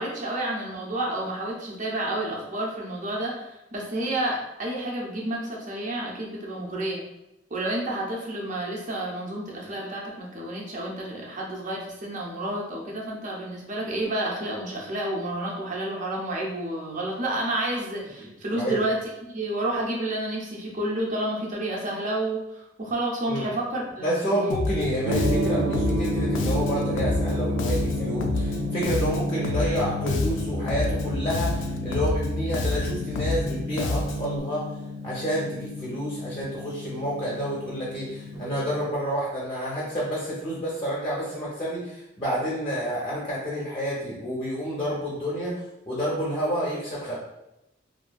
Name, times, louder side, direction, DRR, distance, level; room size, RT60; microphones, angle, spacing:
voice 1, 0.0-7.0 7.5-19.0 19.3-24.3, right 1 dB, 40° right, -2 dB, 0.6 m, -30 dB
voice 2, 24.0-34.7 35.0-47.2, equal, 25° left, -5 dB, 0.6 m, -29 dB
Bass guitar, 24.5-34.4, left 2 dB, 70° left, 0.3 m, -29 dB
Gong, 25.0-38.8, left 1 dB, 85° right, 0.4 m, -31 dB
2.7 x 2.5 x 2.2 m, 0.91 s
head